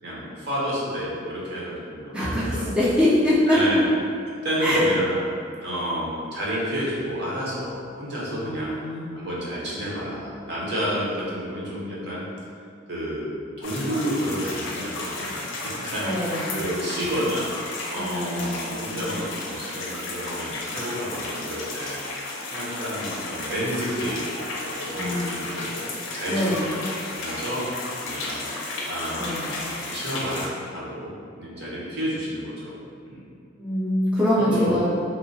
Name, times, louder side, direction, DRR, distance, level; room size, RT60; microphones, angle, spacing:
voice 1, 0.0-3.0 3.5-3.9 4.4-5.2 5.6-8.7 9.1-12.3 12.9-22.0 22.5-24.4 24.6-25.7 26.1-26.6 27.1-27.6 28.0-28.4 28.9-31.1 31.4-32.7 33.1-33.2 34.3-34.8, equal, 60° right, -6 dB, 0.7 m, -30 dB
voice 2, 2.1-3.8 4.6-4.9 8.4-9.1 16.0-16.5 18.0-19.0 25.0-25.4 26.3-26.6 29.1-29.5 33.6-34.8, left 1 dB, 5° right, -10 dB, 0.4 m, -23 dB
sound 1, 13.6-30.5, left 2 dB, 75° left, 0.4 m, -33 dB
3.0 x 2.1 x 2.6 m, 2.4 s
head